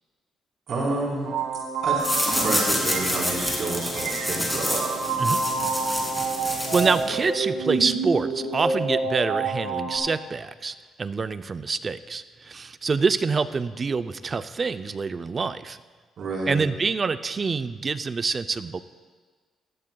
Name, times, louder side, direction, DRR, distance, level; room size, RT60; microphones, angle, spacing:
voice 1, 0.7-1.3 1.8-4.9 16.2-16.6, right 2 dB, 60° right, -4 dB, 3.9 m, -29 dB
sound 1, 1.2-10.0, right 4 dB, 85° right, 1.9 m, -28 dB
sound 2, 2.0-7.3, left 1 dB, 10° left, 3.0 m, -28 dB
voice 2, 6.7-15.8 16.5-18.8, right 4 dB, 35° right, 12 dB, 0.4 m, -26 dB
16.5 x 15.5 x 2.3 m, 1.4 s
cardioid pair, 90°, 0 cm